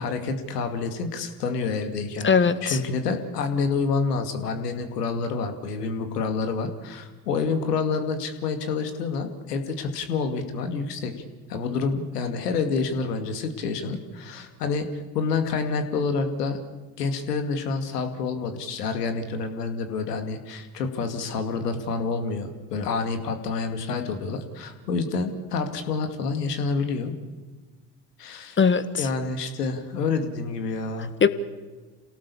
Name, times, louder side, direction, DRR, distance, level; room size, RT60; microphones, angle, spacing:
voice 1, 0.0-11.1 11.5-16.6 17.0-27.1 28.2-28.6 29.0-31.1, left 4 dB, 80° left, 7 dB, 2.5 m, -28 dB
voice 2, 2.2-2.8 28.6-29.1 31.2-31.3, left 6 dB, 25° left, 12 dB, 1.5 m, -20 dB
28.0 x 17.5 x 7.1 m, 1.3 s
hypercardioid pair, 65°, 47 cm